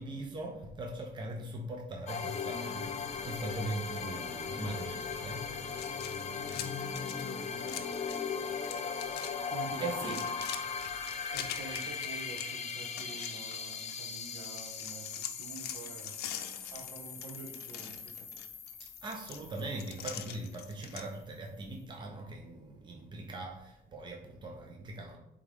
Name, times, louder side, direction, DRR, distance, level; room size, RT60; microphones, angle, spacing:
voice 1, 0.0-5.4 9.8-10.2 19.0-25.2, right 2 dB, 25° right, 1 dB, 0.9 m, -40 dB
sound 1, 2.1-20.5, left 6 dB, 40° left, 0.8 m, -39 dB
sound 2, 5.7-8.3 8.6-9.3 9.6-14.1 14.4-21.1, left 10 dB, 75° left, 0.7 m, -44 dB
voice 2, 7.2-7.8 9.5-10.2 11.3-16.2 16.7-18.1, right 4 dB, 65° right, 1 dB, 1.7 m, -47 dB
8.2 x 3.7 x 3.6 m, 0.86 s
cardioid pair, 110°, 17 cm